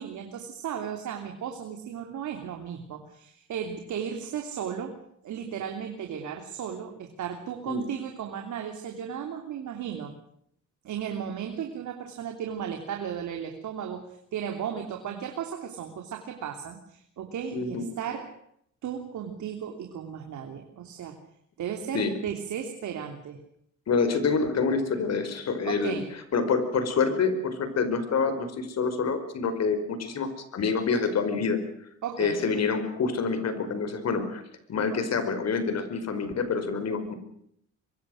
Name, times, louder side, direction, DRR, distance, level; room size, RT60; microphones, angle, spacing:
voice 1, 0.0-5.0 5.2-10.1 10.8-18.3 18.8-21.2 21.6-23.4 25.6-26.1 32.0-32.4, right 8 dB, 75° right, 4 dB, 3.1 m, -35 dB
voice 2, 17.5-17.8 21.9-22.2 23.9-26.0 26.3-31.6 32.2-34.4 34.7-37.1, left 5 dB, 60° left, 10 dB, 5.0 m, -27 dB
23.5 x 23.5 x 6.5 m, 0.70 s
cardioid pair, 90°, 30 cm